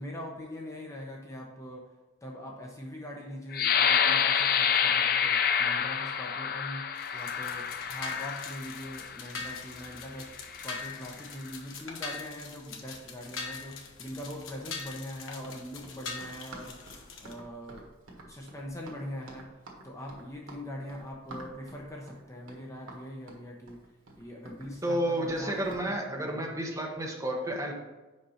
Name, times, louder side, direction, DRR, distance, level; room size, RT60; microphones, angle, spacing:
voice 1, 0.0-1.9 2.2-10.4 10.6-17.9 18.2-19.6 19.8-23.8 24.1-26.6, left 1 dB, 15° left, -1 dB, 0.7 m, -42 dB
sound 1, 3.5-9.2 9.8-10.0 10.5-10.9, left 7 dB, 50° left, 0.4 m, -27 dB
sound 2, 6.9-17.3, left 4 dB, 85° left, 1.1 m, -42 dB
Run, 15.3-25.9, right 2 dB, 90° right, 1.6 m, -49 dB
voice 2, 24.8-27.7, right 1 dB, 15° right, 0 dB, 1.1 m, -31 dB
5.4 x 5.3 x 5.7 m, 1.1 s
head